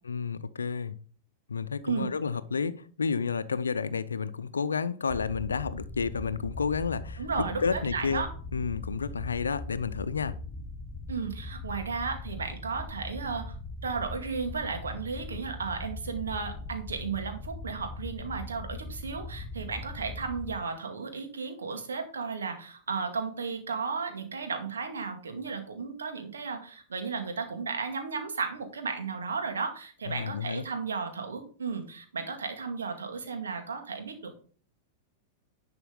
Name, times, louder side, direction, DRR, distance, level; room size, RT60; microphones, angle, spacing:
voice 1, 0.1-1.0 1.5-8.2 8.5-10.4 30.1-30.6, left 5 dB, 85° left, 15 dB, 0.6 m, -31 dB
sound 1, 5.1-20.6, left 2 dB, 10° left, 4.5 m, -40 dB
voice 2, 7.2-8.3 11.1-13.5 13.8-34.4, right 5 dB, 80° right, 5 dB, 2.1 m, -34 dB
11.0 x 6.0 x 3.9 m, 0.43 s
figure-of-eight pair, 95°, 0 cm